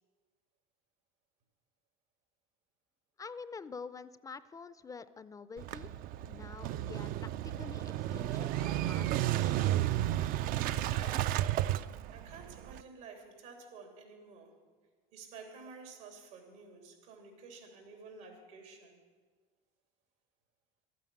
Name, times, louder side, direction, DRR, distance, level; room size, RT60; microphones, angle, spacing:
voice 1, 3.2-5.9 6.2-9.6, left 5 dB, 20° left, 15 dB, 0.4 m, -47 dB
Motorcycle / Engine starting, 5.6-12.8, right 13 dB, 55° right, 0.4 m, -32 dB
voice 2, 10.8-11.5 12.1-14.6 15.1-19.0, right 4 dB, 85° right, 3 dB, 3.1 m, -51 dB
12.5 x 9.3 x 8.5 m, 1.5 s
supercardioid pair, 110°, 17 cm